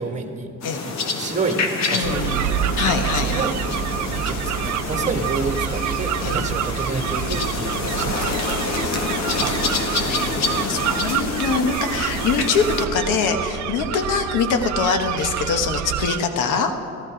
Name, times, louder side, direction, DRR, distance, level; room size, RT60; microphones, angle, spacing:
voice 1, 0.0-0.5 0.9-3.6 4.1-9.0, right 3 dB, 25° right, 5 dB, 1.5 m, -29 dB
sound 1, 0.6-12.9, left 3 dB, 65° left, 1.5 m, -27 dB
voice 2, 1.9-2.4 2.8-3.5 6.2-6.4 10.1-16.7, left 5 dB, 85° left, 7 dB, 1.1 m, -23 dB
sound 2, 2.0-16.2, right 12 dB, 65° right, 0.5 m, -27 dB
14.0 x 13.0 x 5.1 m, 2.9 s
cardioid pair, 90°, 30 cm